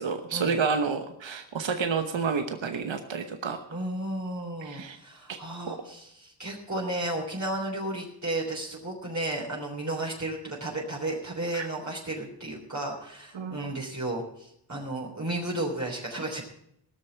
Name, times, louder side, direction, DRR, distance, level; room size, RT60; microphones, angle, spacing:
voice 1, 0.0-3.6 4.6-5.0 5.3-5.4 5.6-5.8 11.5-11.7 13.3-13.6, right 5 dB, 80° right, 7 dB, 1.1 m, -29 dB
voice 2, 3.7-16.4, right 1 dB, 40° right, -2 dB, 3.4 m, -33 dB
17.0 x 6.6 x 8.0 m, 0.75 s
cardioid pair, 55°, 45 cm